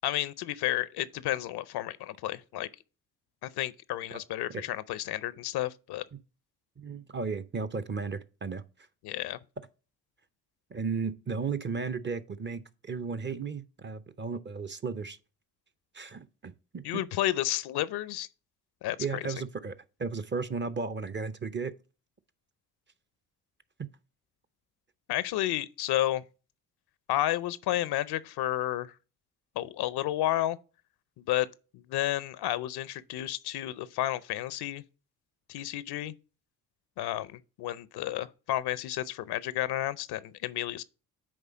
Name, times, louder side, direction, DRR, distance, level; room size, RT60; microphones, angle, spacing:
voice 1, 0.0-2.7 3.6-6.0 9.0-9.4 16.8-18.3 18.8-19.2 25.1-26.2 27.1-28.9 29.6-30.6 31.3-31.5 31.9-34.8 35.5-36.1 37.0-40.8, left 14 dB, 65° left, 0.6 m, -31 dB
voice 2, 6.8-8.6 10.7-15.2 15.9-17.0 19.0-19.7 20.0-21.7 23.8-23.9, right 5 dB, 25° right, 0.6 m, -34 dB
8.6 x 3.3 x 5.0 m
hypercardioid pair, 50°, 43 cm